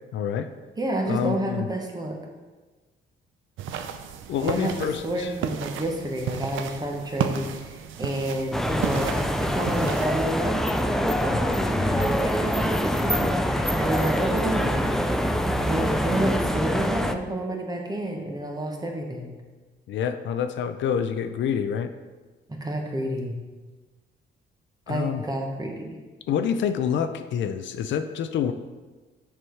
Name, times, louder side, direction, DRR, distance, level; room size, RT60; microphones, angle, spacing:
voice 1, 0.1-0.5 1.1-1.7 4.3-5.3 11.3-11.4 19.9-21.9 24.9-25.2 26.3-28.5, left 8 dB, 70° left, 10 dB, 0.5 m, -27 dB
voice 2, 0.8-2.2 4.4-15.0 15.6-19.3 22.5-23.3 24.9-26.0, right 1 dB, 20° right, 1 dB, 1.3 m, -30 dB
sound 1, 3.6-10.2, right 8 dB, 80° right, 0.6 m, -33 dB
sound 2, 8.5-17.1, equal, ahead, 0.4 m, -25 dB
6.2 x 4.9 x 4.6 m, 1.3 s
cardioid pair, 90°, 20 cm